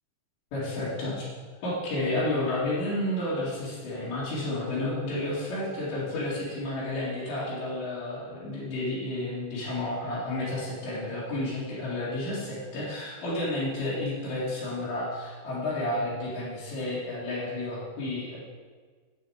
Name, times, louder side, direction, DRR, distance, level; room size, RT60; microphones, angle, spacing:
voice 1, 0.5-1.2 1.6-18.4, left 1 dB, 70° left, -10 dB, 4.7 m, -31 dB
10.0 x 8.9 x 4.9 m, 1.5 s
omnidirectional pair, 5.4 m